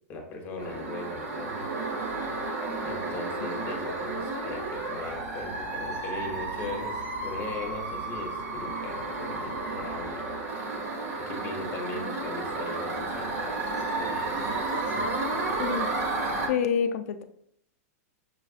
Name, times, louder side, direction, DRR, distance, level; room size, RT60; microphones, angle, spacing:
voice 1, 0.1-1.6 2.8-10.5 11.2-13.6 14.0-15.1, left 3 dB, 25° left, 2 dB, 0.9 m, -39 dB
sound 1, 0.6-16.5, right 3 dB, 70° right, 0.9 m, -32 dB
voice 2, 16.5-17.2, left 7 dB, 70° left, 9 dB, 0.4 m, -28 dB
6.2 x 2.4 x 2.4 m, 0.72 s
supercardioid pair, 145°, 8 cm